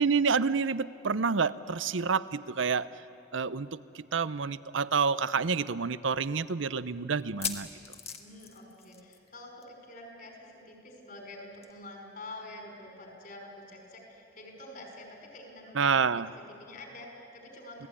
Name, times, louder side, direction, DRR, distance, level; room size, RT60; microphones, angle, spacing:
voice 1, 0.0-2.9 3.3-7.7 15.8-16.3, right 5 dB, 80° right, 15 dB, 0.7 m, -28 dB
sound 1, 4.5-4.6 4.9-5.0 5.6-5.7 7.2-9.3 9.6-9.8 10.1-10.2 11.6-11.7, left 7 dB, 30° left, 1.6 m, -39 dB
voice 2, 8.2-17.9, left 2 dB, 50° left, 1 dB, 5.5 m, -47 dB
27.0 x 18.0 x 9.9 m, 2.8 s
head